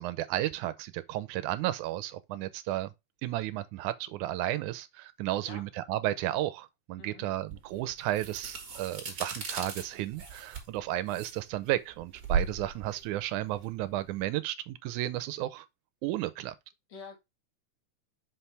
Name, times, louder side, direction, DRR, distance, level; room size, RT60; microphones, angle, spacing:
voice 1, 0.0-2.9 3.2-15.7 16.0-16.5, right 14 dB, 85° right, 2.1 m, -33 dB
voice 2, 5.4-5.7 7.0-7.3 16.9-17.2, left 5 dB, 60° left, 2.7 m, -47 dB
sound 1, 7.5-14.3, right 6 dB, 35° right, 2.2 m, -37 dB
5.9 x 5.7 x 3.3 m
omnidirectional pair, 3.5 m